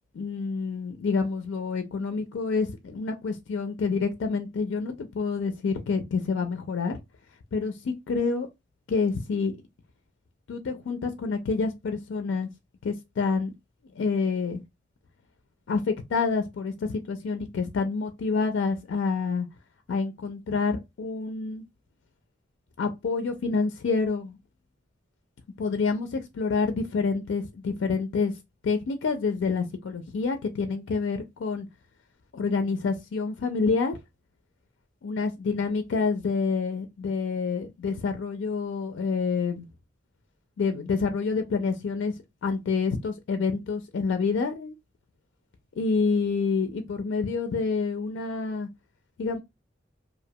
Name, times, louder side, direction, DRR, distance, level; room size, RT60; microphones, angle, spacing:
voice 1, 0.1-7.0 7.5-8.5 8.9-9.6 10.5-12.5 12.8-13.5 14.0-14.6 15.7-19.5 19.9-21.6 22.8-24.4 25.6-28.4 28.6-31.7 32.3-34.0 35.0-39.7 40.6-42.2 42.4-44.7 45.8-48.7 49.2-49.4, left 4 dB, 75° left, 0.4 m, -28 dB
2.5 x 2.1 x 2.7 m
head